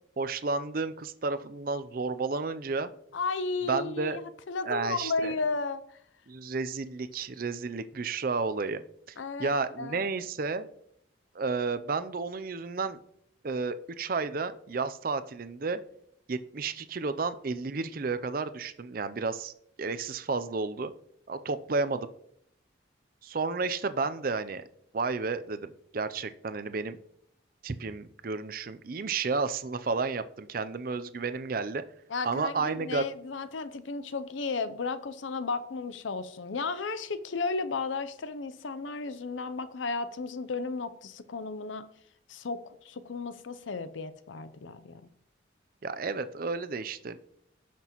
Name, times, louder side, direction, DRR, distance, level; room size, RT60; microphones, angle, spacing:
voice 1, 0.2-2.9 3.7-4.2 4.6-5.3 6.3-10.7 11.3-13.0 13.4-15.8 16.3-19.5 19.8-20.9 21.3-22.1 23.2-24.6 24.9-27.0 27.6-31.8 32.2-33.1 45.8-47.4, right 4 dB, 45° right, 0.5 m, -32 dB
voice 2, 3.1-6.0 9.2-10.1 32.1-41.9 42.3-45.1, left 4 dB, 80° left, 0.6 m, -34 dB
16.5 x 6.0 x 3.0 m
head